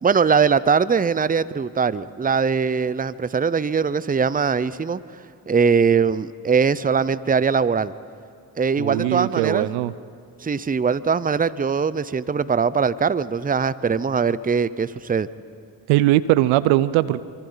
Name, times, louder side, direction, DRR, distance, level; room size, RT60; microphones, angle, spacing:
voice 1, 0.0-5.0 5.5-7.9 8.6-9.7 10.4-15.3, right 6 dB, 20° right, 17 dB, 0.7 m, -21 dB
voice 2, 8.8-9.9 15.9-17.2, right 15 dB, 80° right, 17 dB, 0.7 m, -20 dB
27.5 x 25.0 x 4.0 m, 2.4 s
hypercardioid pair, 45°, 47 cm